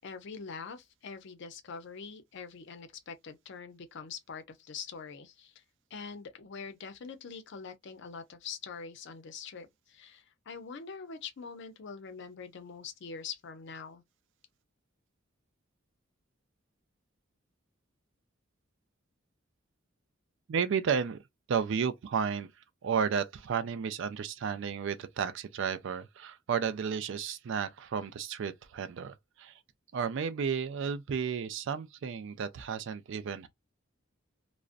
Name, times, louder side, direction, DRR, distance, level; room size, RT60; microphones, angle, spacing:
voice 1, 0.0-5.6 5.9-14.0, left 5 dB, 60° left, 0.5 m, -44 dB
voice 2, 20.5-21.2 21.5-22.5 22.8-29.5 29.9-33.5, right 6 dB, 65° right, 0.4 m, -32 dB
2.4 x 2.1 x 2.4 m
head